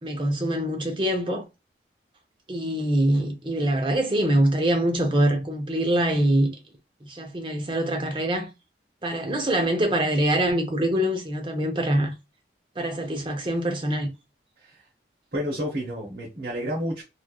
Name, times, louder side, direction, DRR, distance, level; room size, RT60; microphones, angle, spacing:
voice 1, 0.0-1.4 2.5-6.5 7.0-8.5 9.0-12.1 12.8-14.1, right 1 dB, 25° right, 0.5 m, -24 dB
voice 2, 15.3-17.0, equal, 60° right, 0.9 m, -30 dB
3.0 x 2.4 x 2.2 m
head